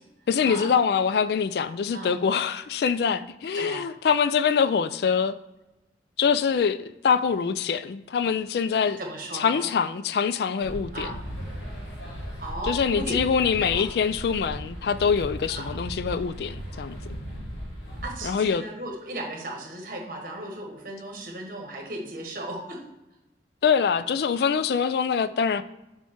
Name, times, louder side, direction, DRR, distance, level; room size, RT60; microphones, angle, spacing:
voice 1, 0.3-5.4 6.2-9.0 9.3-11.1 12.6-17.0 18.2-18.6 23.6-25.6, left 6 dB, 65° left, 0.3 m, -24 dB
voice 2, 3.5-3.9 9.0-9.7 10.9-11.2 12.4-13.1 13.6-13.8 15.6-15.7 18.0-22.8, right 1 dB, 50° right, 1.3 m, -36 dB
sound 1, 10.6-18.1, equal, 90° left, 1.9 m, -37 dB
7.1 x 3.4 x 4.4 m
head